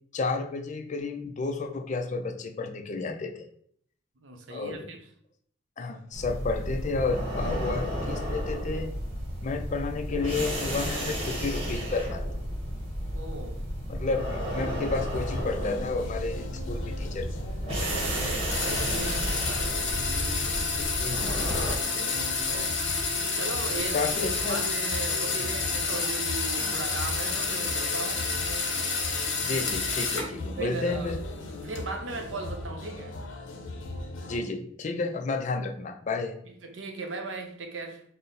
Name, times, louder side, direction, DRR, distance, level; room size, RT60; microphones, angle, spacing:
voice 1, 0.1-3.5 4.5-4.9 5.8-8.9 9.4-12.2 13.9-17.3 18.9-19.1 21.0-21.5 23.9-24.6 25.4-25.5 29.4-31.2 34.3-36.4, left 3 dB, 40° left, 6 dB, 0.4 m, -31 dB
voice 2, 4.2-5.0 13.1-13.6 17.9-19.7 22.1-22.8 23.4-24.1 24.5-28.3 30.6-31.1 31.6-33.2 36.4-38.0, right 3 dB, 85° right, 4 dB, 0.7 m, -38 dB
sound 1, 6.1-21.7, equal, 30° right, 1.0 m, -32 dB
sound 2, 14.9-34.4, left 2 dB, 90° left, 0.6 m, -39 dB
sound 3, 18.5-30.4 30.7-31.8, left 4 dB, 65° left, 0.9 m, -29 dB
4.1 x 2.0 x 3.9 m, 0.64 s
head